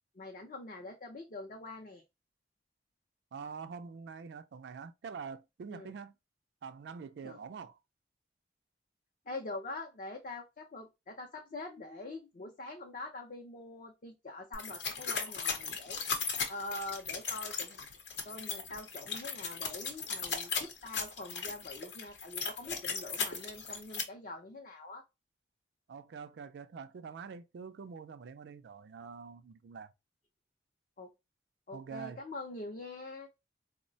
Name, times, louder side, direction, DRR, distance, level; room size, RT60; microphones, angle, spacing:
voice 1, 0.1-2.0 5.7-6.0 7.2-7.4 9.3-16.0 16.5-17.8 18.2-25.0 31.0-31.1 31.7-33.3, left 2 dB, 45° left, 0.5 m, -44 dB
voice 2, 3.3-6.1 6.6-7.8 25.9-29.9 31.7-32.2, right 5 dB, 70° right, 0.3 m, -45 dB
sound 1, 14.5-24.0, left 5 dB, 80° left, 0.7 m, -37 dB
3.8 x 2.1 x 2.6 m
head